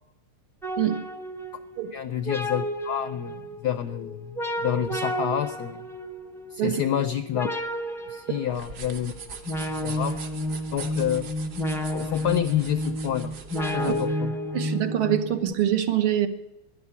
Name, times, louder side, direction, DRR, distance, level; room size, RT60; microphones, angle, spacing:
sound 1, 0.6-15.5, equal, 5° left, 0.4 m, -31 dB
voice 1, 1.9-5.8 6.5-7.5 8.1-9.1 9.8-10.2 10.7-11.3 11.9-13.4 13.7-14.4, left 10 dB, 75° left, 12 dB, 0.9 m, -28 dB
sound 2, 8.5-14.1, right 5 dB, 50° right, 1.8 m, -42 dB
voice 2, 14.5-16.3, right 11 dB, 75° right, 8 dB, 2.1 m, -24 dB
12.0 x 11.0 x 8.3 m, 0.95 s
omnidirectional pair, 2.4 m